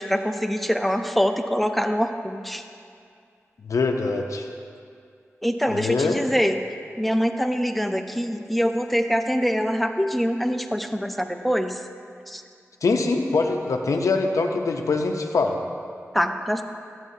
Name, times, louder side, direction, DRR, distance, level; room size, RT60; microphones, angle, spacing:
voice 1, 0.0-2.6 5.4-6.6 7.0-11.8 12.3-12.4 16.1-16.6, equal, ahead, 6 dB, 0.6 m, -24 dB
voice 2, 3.6-4.5 5.7-6.3 12.8-15.6, left 3 dB, 85° left, 3 dB, 0.6 m, -23 dB
12.5 x 9.2 x 2.7 m, 2.3 s
cardioid pair, 50°, 5 cm